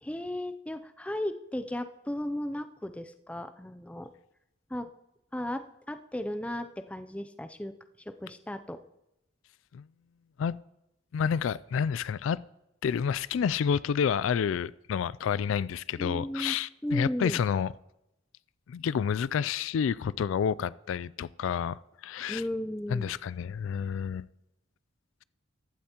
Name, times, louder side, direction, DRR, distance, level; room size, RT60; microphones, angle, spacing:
voice 1, 0.0-4.1 4.7-4.9 5.3-8.8 16.0-16.6 16.8-17.4 22.3-23.2, left 1 dB, 5° left, 0.4 m, -35 dB
voice 2, 11.1-12.4 12.8-17.7 18.7-22.4 22.9-24.3, left 7 dB, 80° left, 0.3 m, -29 dB
15.0 x 12.0 x 2.9 m
head